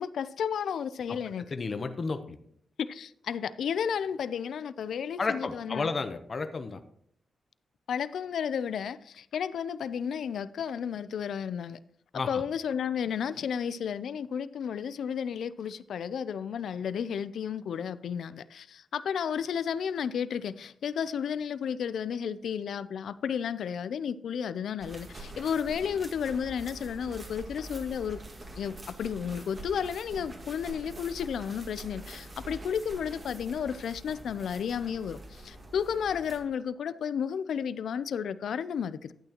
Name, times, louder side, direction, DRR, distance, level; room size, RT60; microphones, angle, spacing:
voice 1, 0.0-1.4 2.9-5.9 7.9-11.8 12.3-28.2 28.6-39.1, left 7 dB, 85° left, 0.4 m, -32 dB
voice 2, 1.5-2.4 5.2-6.8 12.1-12.4, left 4 dB, 45° left, 0.8 m, -32 dB
sound 1, 24.8-36.4, right 1 dB, 40° right, 1.9 m, -45 dB
12.0 x 8.8 x 2.9 m
cardioid pair, 90°, 0 cm